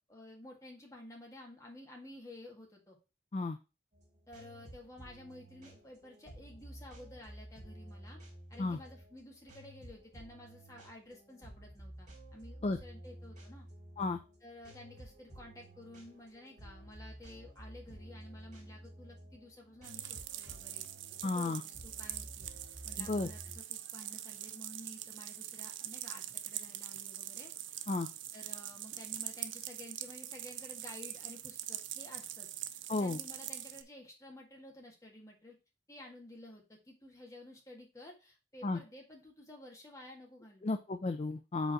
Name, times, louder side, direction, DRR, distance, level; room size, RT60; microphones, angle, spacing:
voice 1, 0.1-3.0 4.3-8.2 8.5-13.7 14.4-20.9 21.2-22.5 22.8-27.5 28.3-35.6 35.9-40.7, left 1 dB, 15° left, 0 dB, 1.7 m, -52 dB
sound 1, 3.9-23.6, right 1 dB, 40° right, 3.0 m, -52 dB
sound 2, 19.8-33.8, right 12 dB, 90° right, 0.6 m, -43 dB
voice 2, 21.2-21.6 23.0-23.3 27.9-28.1 32.9-33.2 38.6-38.8 40.6-41.7, left 3 dB, 35° left, 8 dB, 0.4 m, -33 dB
5.1 x 3.9 x 5.9 m, 0.30 s
head